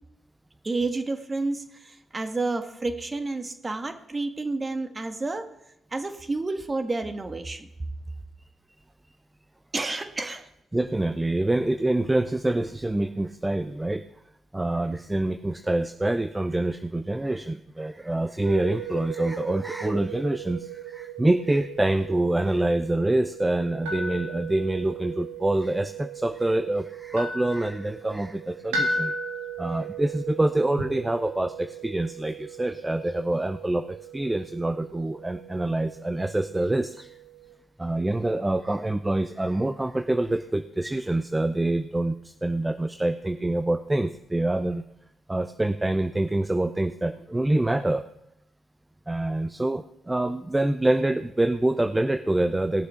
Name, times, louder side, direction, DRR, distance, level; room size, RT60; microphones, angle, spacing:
voice 1, 0.6-5.5 5.9-7.7 9.7-10.5, right 3 dB, 30° right, 8 dB, 1.7 m, -30 dB
voice 2, 10.7-14.0 14.5-29.1 29.6-37.1 37.8-44.8 45.3-48.0 49.1-52.9, right 1 dB, 15° right, 10 dB, 0.7 m, -26 dB
sound 1, 18.4-37.5, right 3 dB, 90° right, 2.1 m, -37 dB
18.5 x 6.7 x 5.8 m, 0.81 s
hypercardioid pair, 50°, 0 cm